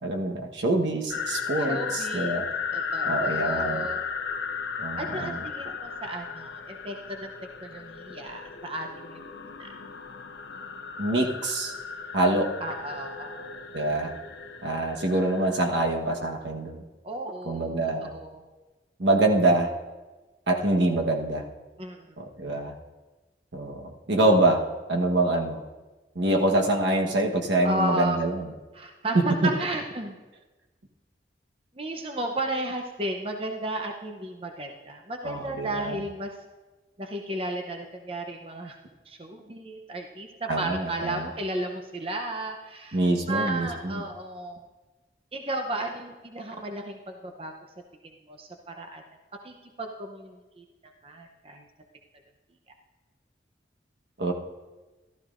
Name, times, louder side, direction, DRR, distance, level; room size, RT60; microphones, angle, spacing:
voice 1, 0.0-2.5 3.0-3.9 4.8-5.4 11.0-11.7 12.1-12.5 13.7-14.1 14.6-16.8 17.4-18.1 19.0-19.7 20.5-21.4 22.2-22.7 23.5-24.6 24.9-25.6 26.1-28.5 35.2-36.0 40.5-41.2 42.9-44.0 54.2-54.3, right 2 dB, 85° right, 2 dB, 1.2 m, -25 dB
sound 1, 1.1-15.7, left 6 dB, 80° left, 0.7 m, -35 dB
voice 2, 1.7-2.5 2.7-4.4 5.0-9.2 9.6-9.7 12.6-13.5 17.0-17.7 18.0-18.4 21.8-22.1 27.6-28.2 28.7-30.2 31.7-36.3 37.0-38.8 39.1-44.7 45.3-47.5 48.0-49.0 49.4-51.6, right 1 dB, 30° right, 3 dB, 0.7 m, -34 dB
14.5 x 13.0 x 2.5 m, 1.2 s
head